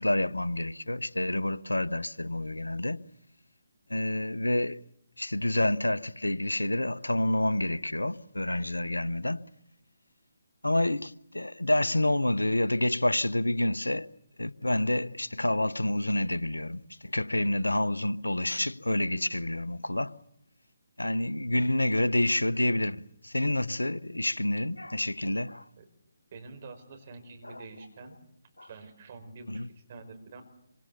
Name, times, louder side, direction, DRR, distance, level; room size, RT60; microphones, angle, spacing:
voice 1, 0.0-3.0 3.9-4.8 5.2-9.5 10.6-14.1 14.4-20.1 21.0-25.6 27.4-27.6 28.6-28.7 29.5-29.7, left 1 dB, 85° left, 0.9 m, -28 dB
voice 2, 26.3-28.2 28.6-30.4, right 3 dB, 40° right, 5.1 m, -47 dB
27.0 x 25.0 x 7.0 m
figure-of-eight pair, 145°, 0 cm